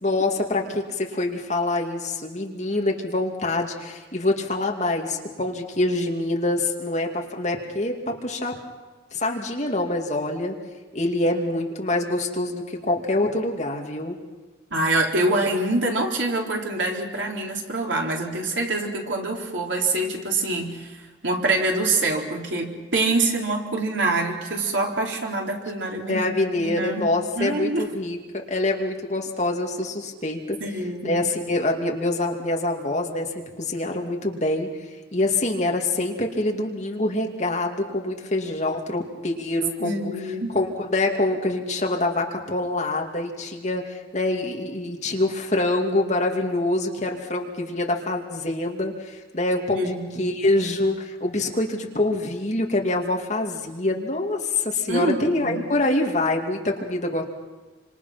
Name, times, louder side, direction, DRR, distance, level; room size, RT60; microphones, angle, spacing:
voice 1, 0.0-8.6 9.1-10.5 10.9-14.2 26.1-30.6 31.0-33.3 33.6-34.7 35.1-40.1 40.5-57.2, left 2 dB, 40° left, 1 dB, 2.6 m, -25 dB
voice 2, 14.7-26.3 26.6-27.1 27.4-27.9 30.6-31.3 39.8-40.6 49.7-50.4 54.9-55.6, right 2 dB, 85° right, 0 dB, 4.0 m, -25 dB
28.5 x 26.0 x 6.0 m, 1.2 s
head